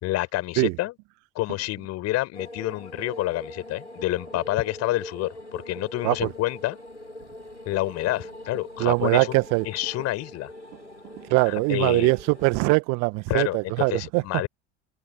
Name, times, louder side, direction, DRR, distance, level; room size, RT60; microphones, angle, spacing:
voice 1, 0.0-0.9 1.3-6.8 7.7-9.4 9.6-10.5 11.5-12.1 13.3-14.5, left 17 dB, 50° left, 5.8 m, -28 dB
sound 1, 2.3-12.6, left 1 dB, 90° left, 6.5 m, -42 dB
voice 2, 8.8-9.6 11.3-14.2, right 30 dB, 55° right, 1.5 m, -22 dB
figure-of-eight pair, 65°, 33 cm